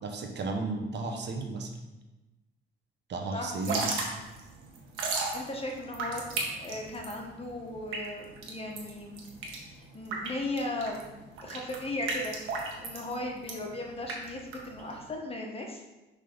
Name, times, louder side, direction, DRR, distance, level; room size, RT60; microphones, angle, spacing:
voice 1, 0.0-1.7 3.1-3.9, right 3 dB, 60° right, 3 dB, 1.1 m, -34 dB
voice 2, 3.3-4.0 5.3-9.2 9.6-12.4 12.8-15.8, left 2 dB, 30° left, 1 dB, 1.4 m, -37 dB
Drip / Trickle dribble, 3.5-15.1, right 3 dB, 90° right, 1.3 m, -36 dB
6.4 x 3.7 x 5.3 m, 1.1 s
cardioid pair, 90°, 20 cm